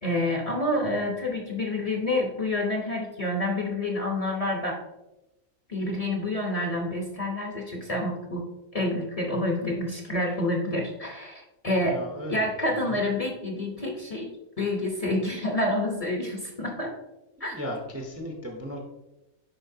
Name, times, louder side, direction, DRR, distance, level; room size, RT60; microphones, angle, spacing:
voice 1, 0.0-4.8 5.7-8.5 8.7-12.0 12.3-14.3 14.6-16.9 17.4-17.5, left 1 dB, 30° left, 0 dB, 0.8 m, -28 dB
voice 2, 11.8-13.0 17.4-18.8, equal, 15° right, 0 dB, 0.6 m, -36 dB
11.0 x 4.4 x 2.7 m, 0.97 s
omnidirectional pair, 1.5 m